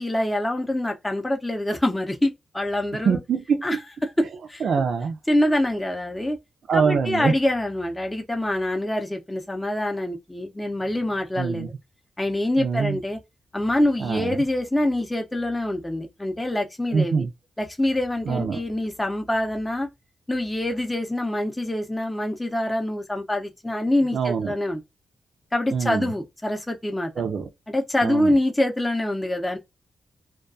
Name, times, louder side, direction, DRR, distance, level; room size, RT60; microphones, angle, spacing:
voice 1, 0.0-3.2 3.6-3.8 4.5-4.6 5.3-6.4 6.7-11.7 12.2-13.2 13.5-17.2 17.6-19.9 20.3-24.8 25.5-27.1 27.7-29.6, left 1 dB, 10° left, 0.6 m, -25 dB
voice 2, 3.0-3.8 4.2-4.3 4.6-5.2 6.7-7.3 11.4-11.7 12.6-13.0 14.0-14.4 16.9-17.3 18.3-18.6 24.1-24.5 25.7-26.1 27.2-27.5 28.0-28.4, right 6 dB, 70° right, 0.4 m, -24 dB
2.3 x 2.2 x 2.5 m
cardioid pair, 80°, 0 cm